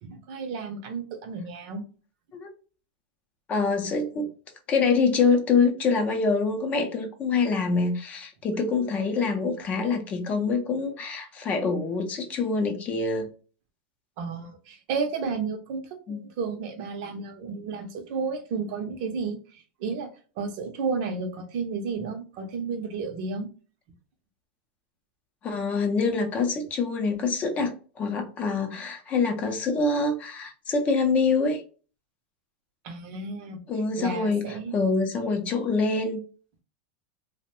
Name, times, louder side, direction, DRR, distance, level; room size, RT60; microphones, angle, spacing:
voice 1, 0.0-1.8 14.2-15.8 16.1-19.4 19.8-20.1 20.4-23.5 32.8-33.6 34.0-34.7, right 5 dB, 55° right, 6 dB, 0.6 m, -32 dB
voice 2, 3.5-4.3 4.7-13.3 16.1-16.2 25.4-31.6 33.7-34.5 34.7-36.2, left 4 dB, 25° left, 4 dB, 0.5 m, -25 dB
2.5 x 2.0 x 3.0 m, 0.38 s
supercardioid pair, 140°, 5 cm